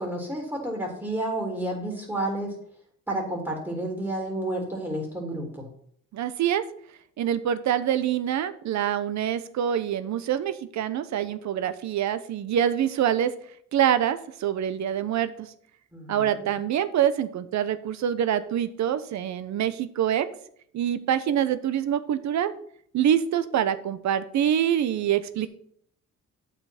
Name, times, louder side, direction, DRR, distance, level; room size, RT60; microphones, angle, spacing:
voice 1, 0.0-2.5 3.1-5.7 15.9-16.5, right 1 dB, 10° right, 0 dB, 3.2 m, -31 dB
voice 2, 6.1-6.6 7.2-13.3 13.7-15.5 16.1-20.3 20.7-22.5 22.9-25.5, right 10 dB, 65° right, 13 dB, 0.9 m, -25 dB
8.2 x 5.9 x 5.9 m, 0.64 s
cardioid pair, 90°, 30 cm